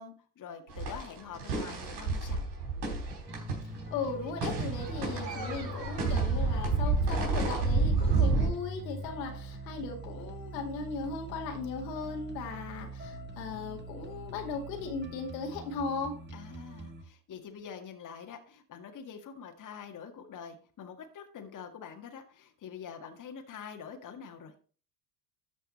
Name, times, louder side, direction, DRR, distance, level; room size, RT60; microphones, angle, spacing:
voice 1, 0.0-2.4 16.3-24.5, left 7 dB, 40° left, 4 dB, 1.8 m, -45 dB
sound 1, 0.7-4.1 4.4-8.5, right 4 dB, 75° right, 4.2 m, -29 dB
sound 2, 3.3-17.0, equal, 20° right, 1.7 m, -43 dB
voice 2, 3.6-16.1, left 4 dB, 80° left, 2 dB, 2.3 m, -37 dB
13.0 x 5.5 x 4.2 m, 0.40 s
hypercardioid pair, 70°, 49 cm